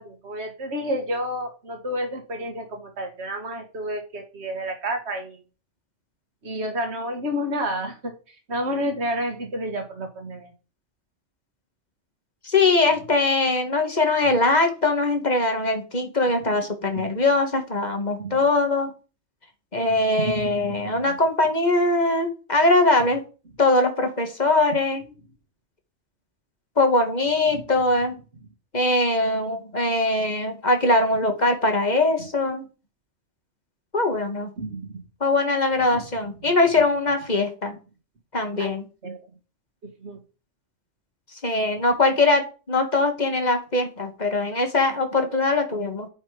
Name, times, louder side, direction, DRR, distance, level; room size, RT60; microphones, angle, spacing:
voice 1, 0.0-5.4 6.4-10.5 16.5-16.6 17.0-17.1 18.2-18.4 19.9-20.0 20.2-21.1 27.5-27.6 34.6-35.0 35.9-36.0 38.6-38.7 39.0-39.2 40.0-40.2, equal, 60° right, 4 dB, 2.1 m, -30 dB
voice 2, 12.4-18.9 19.7-23.2 23.6-25.0 26.8-28.2 28.7-32.6 33.9-34.5 35.2-37.8 38.3-38.9 41.4-46.1, left 2 dB, 35° left, 5 dB, 1.9 m, -21 dB
10.5 x 5.6 x 5.1 m, 0.34 s
omnidirectional pair, 1.3 m